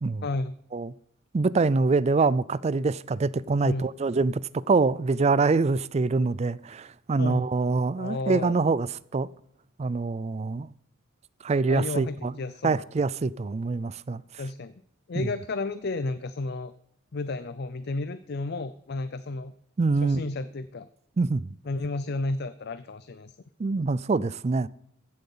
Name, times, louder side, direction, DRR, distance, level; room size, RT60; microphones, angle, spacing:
voice 1, 0.2-0.5 3.6-3.9 7.2-7.4 8.0-8.6 11.7-12.8 14.4-14.7 15.1-16.7 17.1-19.5 20.0-20.9 21.7-23.4, left 3 dB, 50° left, 0.5 m, -32 dB
voice 2, 1.3-8.9 9.1-9.3 9.8-10.7 11.4-12.3 12.6-14.2 15.2-15.3 19.8-20.2 21.2-21.5 23.6-24.7, right 3 dB, 30° right, 0.4 m, -25 dB
15.5 x 7.8 x 5.5 m
head